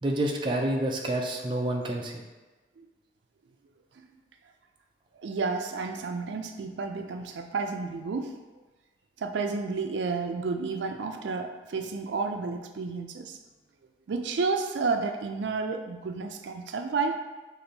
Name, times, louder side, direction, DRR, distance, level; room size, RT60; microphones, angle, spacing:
voice 1, 0.0-2.2, right 1 dB, 25° right, 0 dB, 0.4 m, -28 dB
voice 2, 5.2-8.3 9.2-13.4 14.1-17.2, right 4 dB, 85° right, 5 dB, 0.4 m, -31 dB
5.3 x 2.6 x 3.9 m, 1.2 s
head